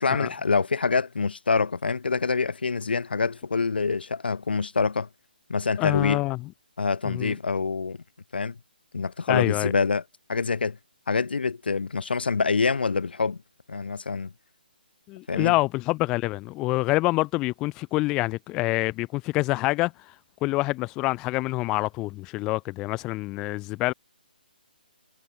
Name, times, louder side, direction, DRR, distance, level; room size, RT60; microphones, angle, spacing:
voice 1, 0.0-5.1 5.5-6.2 6.8-8.0 8.3-8.6 8.9-10.0 10.3-10.8 11.1-13.4 13.7-14.3 15.3-15.5, left 4 dB, 75° left, 1.6 m, -26 dB
voice 2, 5.8-6.4 7.1-7.3 9.3-9.7 15.1-19.9 20.4-23.9, left 21 dB, 10° left, 0.6 m, -26 dB
hypercardioid pair, 175°, 5 cm